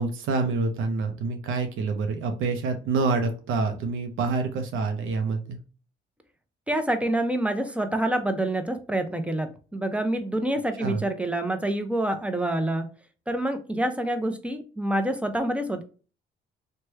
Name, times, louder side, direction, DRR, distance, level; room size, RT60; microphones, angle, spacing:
voice 1, 0.0-5.6 10.8-11.0, right 4 dB, 75° right, 6 dB, 0.5 m, -27 dB
voice 2, 6.7-12.9 13.3-15.8, right 1 dB, 5° right, 7 dB, 0.5 m, -27 dB
3.1 x 2.1 x 3.2 m, 0.36 s
cardioid pair, 80°, 21 cm